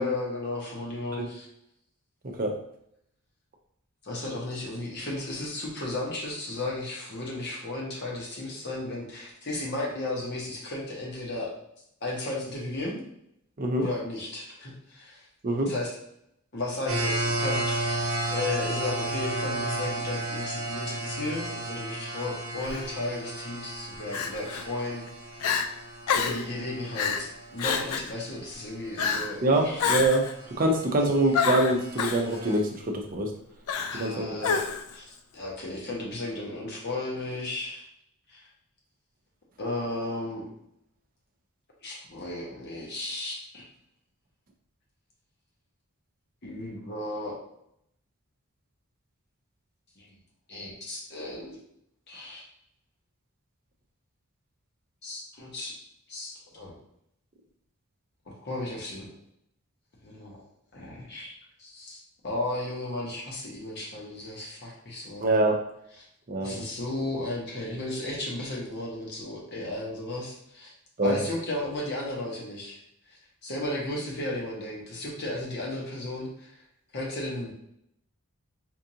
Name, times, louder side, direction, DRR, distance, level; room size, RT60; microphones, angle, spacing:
voice 1, 0.0-1.5 4.0-11.5 12.0-13.0 13.8-15.3 15.7-15.9 16.5-25.1 26.1-29.8 31.0-31.1 33.9-34.7 34.9-37.9 38.3-38.4 39.6-40.5 41.8-43.6 46.4-47.4 50.0-50.1 50.5-51.6 52.1-52.4 55.0-55.7 56.1-56.7 58.3-59.1 60.0-60.4 60.7-61.3 61.6-65.3 66.0-66.1 66.4-70.7 71.0-72.8 73.1-76.6 76.9-77.5, left 2 dB, 50° left, -3 dB, 1.0 m, -34 dB
sound 1, 16.9-27.8 28.3-28.4 29.0-32.6, right 1 dB, 70° right, 0.8 m, -34 dB
Crying sobbing, 22.6-22.9 24.1-24.6 25.1-25.2 25.4-25.7 26.1-26.5 26.9-27.3 27.6-28.1 29.0-29.3 29.8-30.3 31.3-32.2 33.7-34.1 34.4-34.9, left 6 dB, 85° left, 0.4 m, -28 dB
voice 2, 29.4-30.2 30.6-33.3 34.0-34.5 65.2-65.6 66.3-66.6 71.0-71.1, right 1 dB, 40° right, 1 dB, 0.6 m, -24 dB
4.5 x 2.5 x 2.8 m, 0.76 s
head